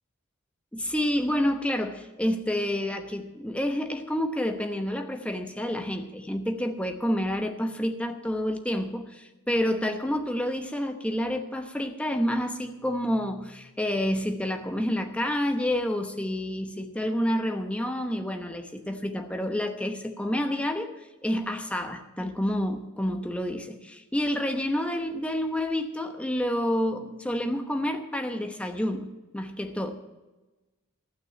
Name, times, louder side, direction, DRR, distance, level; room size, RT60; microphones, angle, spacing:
voice 1, 0.7-20.9 21.2-29.1 29.3-29.9, left 1 dB, 5° left, 5 dB, 0.9 m, -29 dB
15.0 x 6.2 x 9.0 m, 1.1 s
head